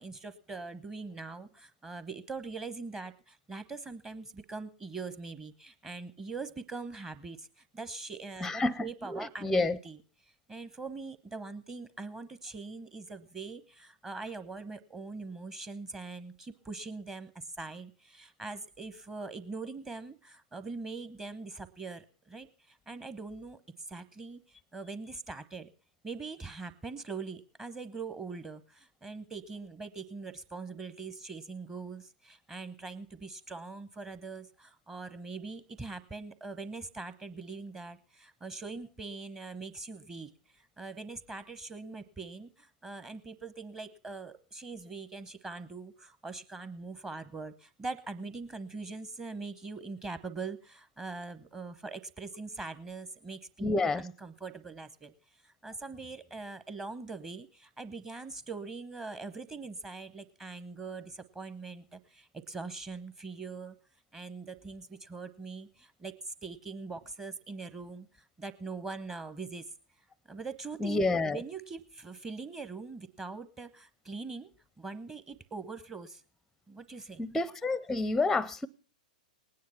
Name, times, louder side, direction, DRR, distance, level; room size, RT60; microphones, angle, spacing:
voice 1, 0.0-10.0 10.5-23.6 23.9-25.7 26.0-63.8 64.1-69.7 70.0-76.2 76.7-77.2 77.9-78.0, right 4 dB, 15° right, 0.9 m, -42 dB
voice 2, 8.4-8.8 9.1-9.8 53.6-54.0 70.8-71.4 77.2-78.7, left 3 dB, 5° left, 0.6 m, -29 dB
19.5 x 9.6 x 5.7 m
figure-of-eight pair, 105°, 5 cm